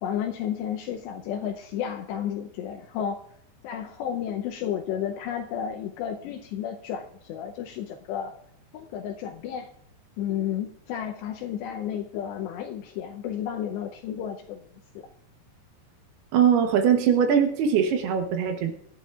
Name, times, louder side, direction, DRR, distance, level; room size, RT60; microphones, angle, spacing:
voice 1, 0.0-3.3 3.6-8.3 8.7-9.7 10.2-14.6 15.0-15.1, left 9 dB, 80° left, 3 dB, 2.8 m, -32 dB
voice 2, 16.3-18.7, right 7 dB, 70° right, 5 dB, 2.8 m, -21 dB
24.0 x 11.5 x 2.4 m, 0.68 s
omnidirectional pair, 5.2 m